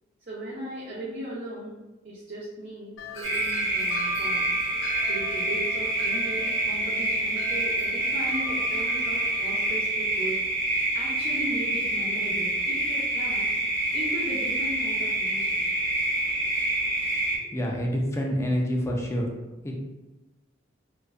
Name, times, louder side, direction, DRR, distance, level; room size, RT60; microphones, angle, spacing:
voice 1, 0.3-1.8 2.0-4.4 5.1-10.4 10.9-13.5 13.9-15.5, right 1 dB, 50° right, -8 dB, 0.5 m, -37 dB
Wind chime, 3.0-9.7, right 1 dB, 90° left, 0.4 m, -39 dB
sound 1, 3.2-17.4, right 1 dB, 90° right, 0.7 m, -27 dB
voice 2, 17.4-19.3 19.6-19.7, equal, 15° left, -1 dB, 0.3 m, -27 dB
2.5 x 2.1 x 2.3 m, 1.1 s
head